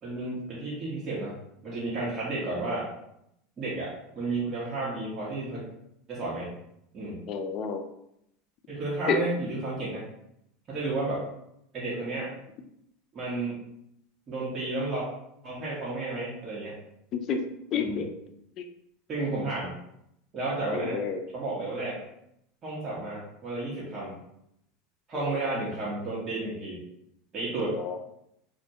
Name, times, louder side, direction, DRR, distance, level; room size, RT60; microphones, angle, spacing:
voice 1, 0.0-2.9 3.6-5.6 6.1-6.5 6.9-7.2 8.7-10.0 10.7-11.2 11.7-12.3 13.1-13.6 14.3-15.1 15.4-16.8 17.7-18.1 19.1-19.8 20.3-21.0 21.3-22.0 22.6-24.1 25.1-26.8 27.3-27.8, right 2 dB, 35° right, -7 dB, 0.9 m, -32 dB
voice 2, 7.3-7.8 9.1-9.2 17.3-17.4 17.7-18.1 20.7-21.2 25.1-25.3 27.7-28.0, left 6 dB, 45° left, 6 dB, 0.3 m, -29 dB
2.1 x 2.1 x 2.7 m, 0.78 s
hypercardioid pair, 100°, 0 cm